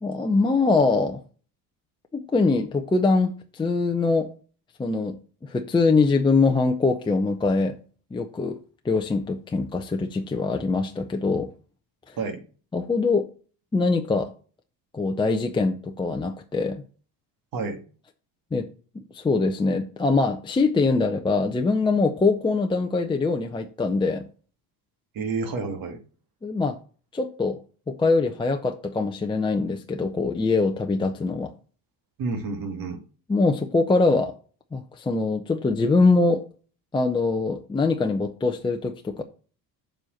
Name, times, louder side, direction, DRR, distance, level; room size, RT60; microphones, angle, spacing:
voice 1, 0.0-1.2 2.1-4.3 4.8-7.8 8.1-8.6 8.8-11.5 12.1-12.2 12.7-13.3 13.7-14.3 14.9-16.8 18.5-18.7 19.1-24.3 26.4-26.8 27.1-27.6 27.9-31.5 33.3-34.3 34.7-36.4 36.9-39.2, left 3 dB, 10° left, 0.7 m, -23 dB
voice 2, 25.1-26.0 32.2-33.0, right 4 dB, 55° right, 2.2 m, -29 dB
7.4 x 4.4 x 6.5 m
cardioid pair, 125°, 41 cm